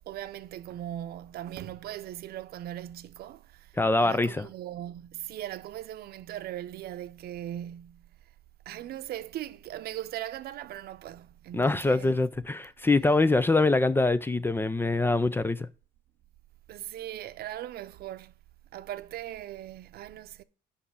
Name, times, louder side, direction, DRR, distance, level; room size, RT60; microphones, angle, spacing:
voice 1, 0.1-3.4 4.0-8.0 8.7-12.2 16.7-18.3 18.7-20.4, right 12 dB, 65° right, 0.7 m, -39 dB
voice 2, 3.8-4.5 11.5-15.7, left 2 dB, 15° left, 0.5 m, -24 dB
7.1 x 5.6 x 7.0 m
cardioid pair, 110°, 17 cm